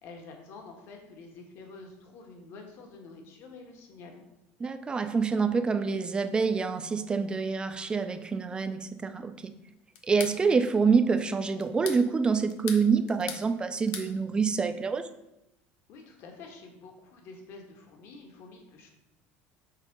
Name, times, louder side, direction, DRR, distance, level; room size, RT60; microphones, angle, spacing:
voice 1, 0.0-4.2 15.9-18.9, left 3 dB, 55° left, 3 dB, 1.6 m, -48 dB
voice 2, 4.6-9.5 10.0-15.1, right 5 dB, 20° right, 9 dB, 0.5 m, -26 dB
sound 1, 10.0-10.4 11.6-12.0 12.5-13.5 13.7-14.1, left 7 dB, 75° left, 1.0 m, -39 dB
6.5 x 4.4 x 5.3 m, 0.90 s
cardioid pair, 135°, 5 cm